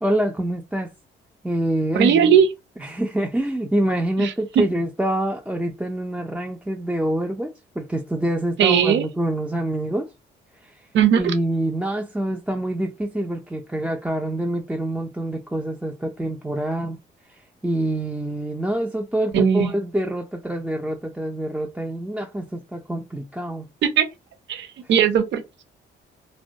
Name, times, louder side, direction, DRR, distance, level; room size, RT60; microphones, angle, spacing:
voice 1, 0.0-0.9 1.4-2.4 2.8-10.1 10.6-10.9 11.2-17.0 17.3-23.7, right 1 dB, 5° right, 0.3 m, -26 dB
voice 2, 1.9-2.5 4.2-4.6 8.6-9.1 10.9-11.2 19.3-19.7 23.8-24.1 24.5-25.6, right 8 dB, 70° right, 0.6 m, -18 dB
2.2 x 2.1 x 2.7 m
cardioid pair, 90°, 20 cm